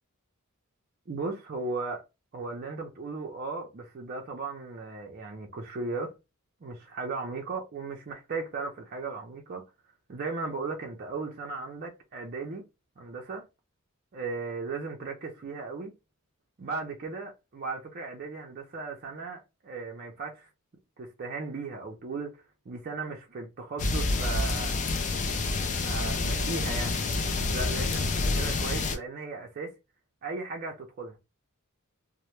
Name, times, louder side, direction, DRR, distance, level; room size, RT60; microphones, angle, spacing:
voice 1, 1.1-2.0 2.3-6.1 6.6-9.6 10.1-12.6 13.0-13.4 14.1-15.9 16.6-20.5 21.0-22.3 22.7-24.8 25.6-27.0 27.5-29.7 30.2-31.2, right 3 dB, 40° right, 0.4 m, -36 dB
sound 1, 23.8-29.0, left 3 dB, 35° left, 0.4 m, -28 dB
2.1 x 2.0 x 2.9 m
head